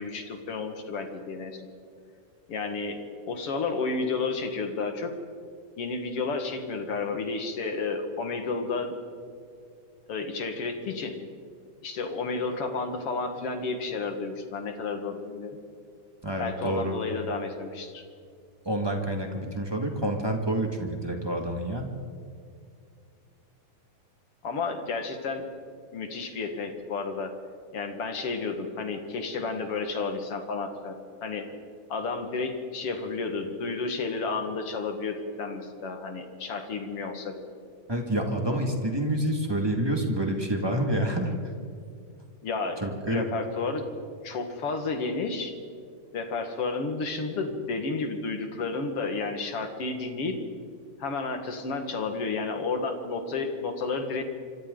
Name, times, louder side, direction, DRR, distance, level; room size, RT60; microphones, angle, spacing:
voice 1, 0.0-1.6 2.5-5.1 5.8-8.9 10.1-11.2 11.8-15.6 16.4-18.1 24.4-25.5 25.9-27.3 27.7-31.5 31.9-37.5 42.4-42.8 43.1-43.9 44.2-45.5 46.1-50.4 51.0-54.2, left 4 dB, 50° left, 5 dB, 2.3 m, -31 dB
voice 2, 16.2-17.0 18.6-21.9 37.9-41.3 42.8-43.2, right 1 dB, 10° right, 2 dB, 1.1 m, -28 dB
26.0 x 25.5 x 3.9 m, 2.3 s
omnidirectional pair, 3.8 m